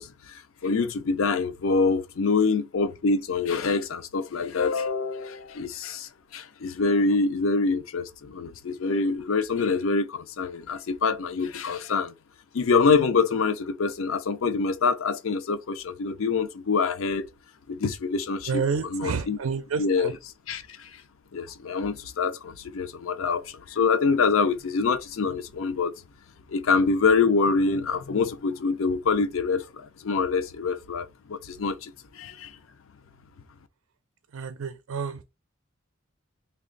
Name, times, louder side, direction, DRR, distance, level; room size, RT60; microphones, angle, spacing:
voice 1, 0.0-12.1 12.5-17.3 17.7-19.4 19.8-20.2 20.5-20.9 21.3-25.9 26.5-32.6, left 4 dB, 75° left, 0.5 m, -25 dB
voice 2, 18.5-20.1 34.3-35.2, right 5 dB, 90° right, 0.4 m, -29 dB
3.2 x 2.3 x 3.7 m
head